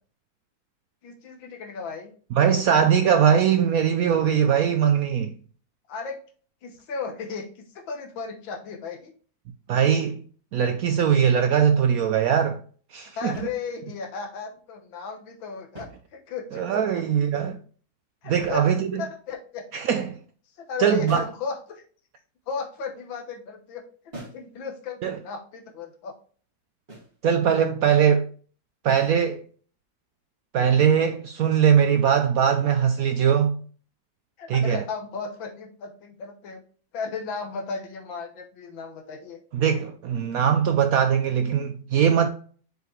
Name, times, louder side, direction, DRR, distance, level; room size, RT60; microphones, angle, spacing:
voice 1, 1.0-2.1 5.9-6.2 6.6-9.1 13.2-16.6 18.2-18.6 19.0-19.6 20.6-21.8 22.5-23.8 24.3-26.2 34.4-36.6 36.9-39.4, left 5 dB, 80° left, 1.8 m, -35 dB
voice 2, 2.3-5.3 9.7-10.2 10.5-12.6 12.9-13.3 16.5-17.6 18.3-19.0 19.7-20.2 20.8-21.2 25.0-25.2 27.2-28.3 28.8-29.4 30.5-33.6 34.5-34.8 39.5-42.3, right 8 dB, 90° right, 0.7 m, -21 dB
sound 1, 13.3-14.1 15.6-16.6 18.4-19.2 21.1-21.5 24.1-24.5 26.9-27.2 28.9-29.2, right 1 dB, 30° right, 2.5 m, -43 dB
6.6 x 4.8 x 3.1 m
omnidirectional pair, 2.1 m